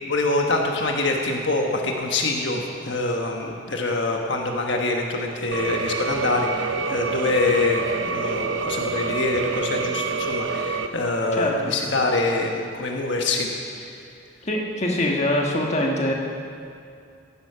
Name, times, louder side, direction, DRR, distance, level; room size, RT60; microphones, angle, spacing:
voice 1, 0.1-13.5, left 2 dB, 65° left, 1 dB, 1.3 m, -25 dB
sound 1, 5.5-10.9, right 4 dB, 70° right, 0.8 m, -27 dB
voice 2, 11.3-11.7 14.4-16.1, left 1 dB, 35° left, -1 dB, 1.5 m, -23 dB
16.0 x 11.5 x 5.7 m, 2.5 s
head